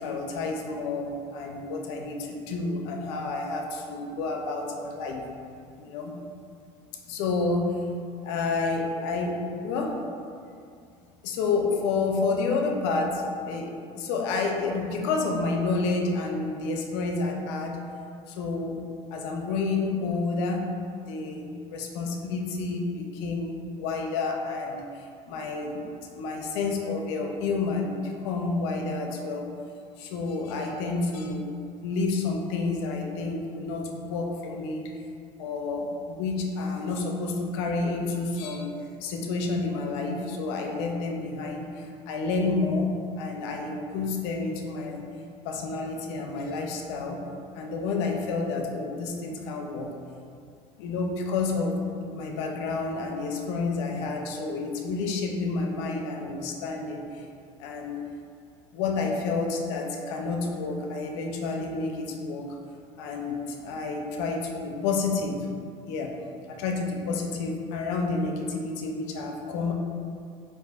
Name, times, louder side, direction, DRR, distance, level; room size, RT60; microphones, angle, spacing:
voice 1, 0.0-5.2 5.8-6.2 7.1-7.8 8.2-9.9 11.2-13.7 14.0-17.8 18.3-18.8 19.1-20.7 21.1-25.9 26.2-29.5 30.0-31.4 31.8-34.9 35.4-38.7 39.0-45.0 45.4-47.2 47.5-49.9 50.8-51.8 52.1-57.2 57.6-58.0 58.7-62.5 63.0-65.5 65.9-66.1 66.5-69.7, left 3 dB, 85° left, 2 dB, 0.5 m, -29 dB
4.7 x 2.5 x 2.3 m, 2.4 s
supercardioid pair, 100°, 14 cm